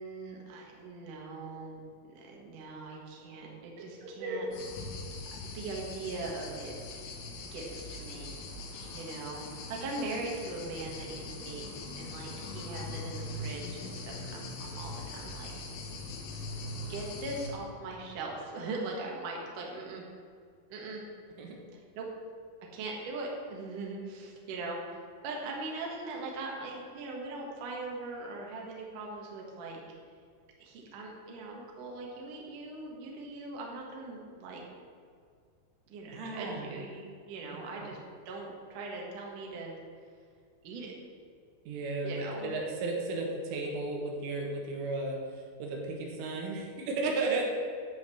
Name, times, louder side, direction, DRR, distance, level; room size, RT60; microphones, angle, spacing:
voice 1, 0.0-1.8 2.1-4.5 5.5-7.1 7.4-8.4 8.9-15.8 16.9-20.0 20.7-21.0 21.7-22.1 22.7-29.8 30.6-34.6 35.9-38.0 38.3-39.7 40.6-40.9 42.0-42.5, right 3 dB, 60° right, -1 dB, 2.3 m, -40 dB
voice 2, 4.0-4.4 21.4-21.6 36.1-36.7 37.8-37.9 41.7-47.4, right 3 dB, 75° right, 0 dB, 3.8 m, -34 dB
sound 1, 4.5-17.5, left 2 dB, 80° left, 4.2 m, -41 dB
11.0 x 5.7 x 7.7 m, 2.1 s
omnidirectional pair, 6.0 m